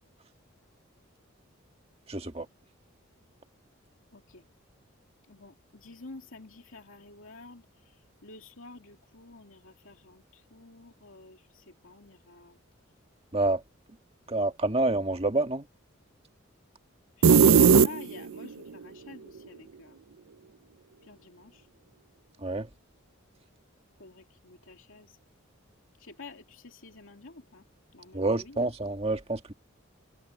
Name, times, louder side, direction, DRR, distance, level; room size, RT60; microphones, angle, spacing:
voice 1, 2.1-2.4 13.3-13.6 14.3-15.6 22.4-22.7 28.1-29.5, right 2 dB, 30° right, 1.7 m, -28 dB
voice 2, 4.1-4.4 5.3-12.6 17.2-20.0 21.0-21.7 24.0-25.2 26.0-27.7 27.9-28.7, left 3 dB, 75° left, 2.5 m, -50 dB
sound 1, 17.2-18.5, right 6 dB, 90° right, 0.6 m, -17 dB
head